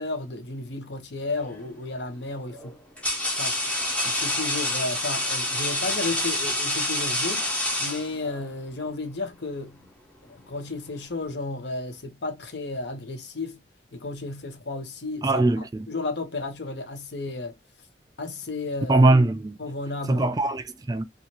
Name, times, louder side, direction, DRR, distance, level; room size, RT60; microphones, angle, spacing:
voice 1, 0.0-2.7 3.4-3.5 4.0-7.5 7.8-9.8 10.2-13.6 13.9-17.6 18.2-19.0 19.6-20.6, left 3 dB, 75° left, 0.8 m, -33 dB
sound 1, 1.4-1.7 2.5-8.5, left 1 dB, 5° left, 0.8 m, -27 dB
voice 2, 15.2-15.9 18.9-19.6 20.1-21.0, right 2 dB, 20° right, 0.3 m, -21 dB
2.6 x 2.4 x 2.9 m
head